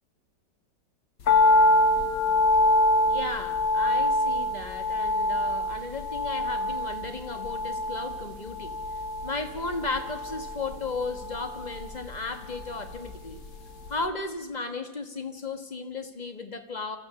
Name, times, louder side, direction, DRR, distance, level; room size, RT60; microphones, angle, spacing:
sound 1, 1.3-13.5 13.8-13.9, left 1 dB, 85° left, 2.4 m, -25 dB
voice 1, 3.0-8.8 9.2-13.4 13.9-17.0, left 3 dB, 25° left, 8 dB, 1.3 m, -35 dB
25.5 x 15.0 x 6.9 m, 1.2 s
omnidirectional pair, 1.8 m